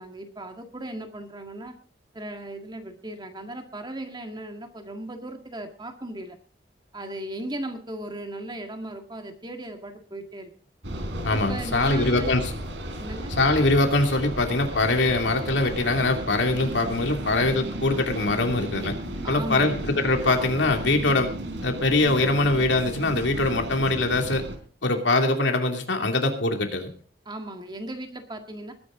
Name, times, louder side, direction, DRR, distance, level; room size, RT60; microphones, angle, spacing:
voice 1, 0.0-1.8 2.1-6.4 6.9-10.5 11.3-12.4 13.0-13.3 19.2-19.8 27.3-28.7, right 1 dB, 25° right, 5 dB, 1.9 m, -37 dB
sound 1, 10.8-24.6, right 1 dB, 85° right, 3.8 m, -34 dB
voice 2, 11.2-12.5 13.4-18.9 19.3-21.3 21.6-24.4 24.8-26.9, left 2 dB, 85° left, 4 dB, 2.7 m, -23 dB
21.0 x 10.0 x 3.9 m, 0.42 s
head